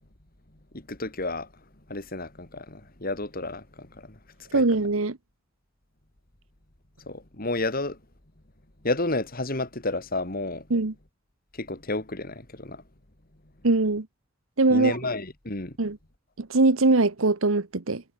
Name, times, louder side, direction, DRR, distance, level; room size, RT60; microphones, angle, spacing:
voice 1, 0.7-1.5 1.9-4.7 7.1-8.0 8.8-10.7 11.6-12.8 14.7-15.8, left 2 dB, 45° left, 3.0 m, -31 dB
voice 2, 4.5-5.2 10.7-10.9 13.6-14.1 14.6-15.0 15.8-16.0 16.4-18.0, right 3 dB, 80° right, 1.2 m, -22 dB
head